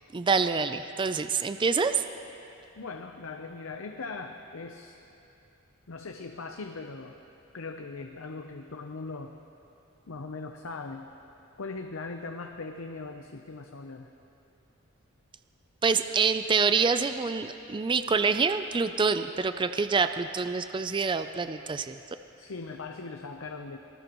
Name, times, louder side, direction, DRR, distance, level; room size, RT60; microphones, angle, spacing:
voice 1, 0.1-2.0 15.8-22.0, right 5 dB, 25° right, 10 dB, 0.4 m, -26 dB
voice 2, 2.7-5.0 5.9-7.2 7.5-9.4 10.1-11.1 11.6-14.1 22.4-23.8, left 3 dB, 70° left, 4 dB, 0.7 m, -40 dB
25.5 x 18.5 x 3.1 m, 2.9 s
head